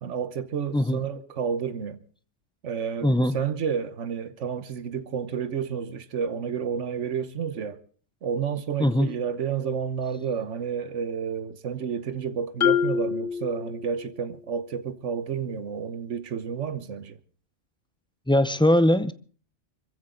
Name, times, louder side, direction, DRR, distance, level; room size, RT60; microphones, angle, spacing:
voice 1, 0.0-2.0 2.6-7.8 8.2-17.2, right 7 dB, 80° right, 1.4 m, -30 dB
voice 2, 3.0-3.4 8.8-9.1 18.3-19.1, left 1 dB, 5° left, 0.4 m, -20 dB
Marimba xylophone, 12.6-14.4, left 8 dB, 45° left, 1.3 m, -26 dB
25.0 x 15.0 x 3.8 m
omnidirectional pair, 1.2 m